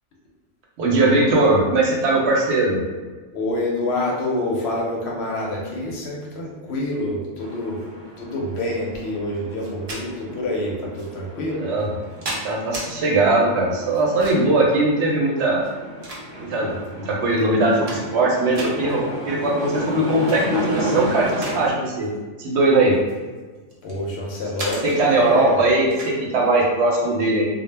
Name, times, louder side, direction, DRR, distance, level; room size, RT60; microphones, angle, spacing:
voice 1, 0.8-2.8 11.6-11.9 12.4-15.6 16.4-21.3 21.5-22.1 22.4-23.0 24.8-27.5, right 2 dB, 70° right, -2 dB, 0.8 m, -20 dB
voice 2, 3.3-7.8 8.2-11.6 23.8-25.7, left 1 dB, 65° left, -3 dB, 0.7 m, -27 dB
sound 1, 7.4-21.7, equal, 40° left, 0.4 m, -33 dB
sound 2, 9.6-10.0 10.9-11.1 11.8-12.9 13.9-14.6 15.5-16.6 17.2-17.3 17.6-18.2 18.5-18.7 20.1-20.4 20.8-21.6 21.9-22.2 22.9-24.0 24.6-24.8 25.9-26.1, right 1 dB, 50° right, 0.4 m, -34 dB
2.1 x 2.0 x 3.1 m, 1.3 s
omnidirectional pair, 1.3 m